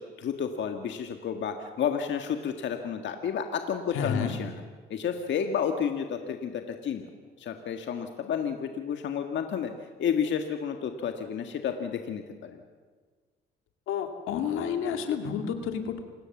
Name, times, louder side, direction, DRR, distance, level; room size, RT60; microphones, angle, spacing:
voice 1, 0.0-4.6 4.9-7.1 7.4-9.7 10.0-12.6, left 7 dB, 65° left, 5 dB, 1.8 m, -31 dB
voice 2, 3.9-4.4 13.9-16.0, left 7 dB, 90° left, 6 dB, 2.4 m, -30 dB
28.0 x 18.5 x 7.3 m, 1.5 s
cardioid pair, 90°, 20 cm